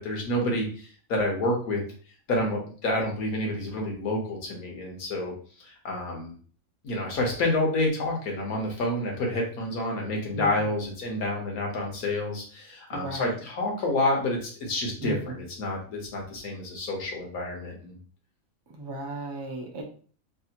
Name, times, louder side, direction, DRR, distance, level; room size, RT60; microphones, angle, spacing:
voice 1, 0.0-1.8 2.3-5.3 5.6-6.3 6.8-18.0, left 1 dB, 90° left, 0 dB, 1.5 m, -29 dB
voice 2, 12.9-13.3 15.0-15.2 18.7-19.8, right 1 dB, 35° right, 0 dB, 0.3 m, -35 dB
3.4 x 2.4 x 2.8 m, 0.43 s
omnidirectional pair, 1.5 m